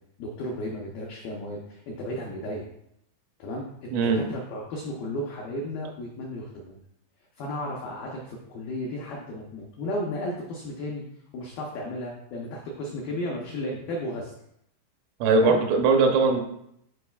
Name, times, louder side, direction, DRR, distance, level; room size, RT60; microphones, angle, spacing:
voice 1, 0.2-2.7 3.4-6.8 7.4-11.0 11.3-14.3 15.4-15.6, left 1 dB, 85° left, -2 dB, 2.0 m, -34 dB
voice 2, 3.9-4.2 15.2-16.4, right 4 dB, 90° right, 3 dB, 3.4 m, -20 dB
12.0 x 4.1 x 2.4 m, 0.75 s
omnidirectional pair, 5.4 m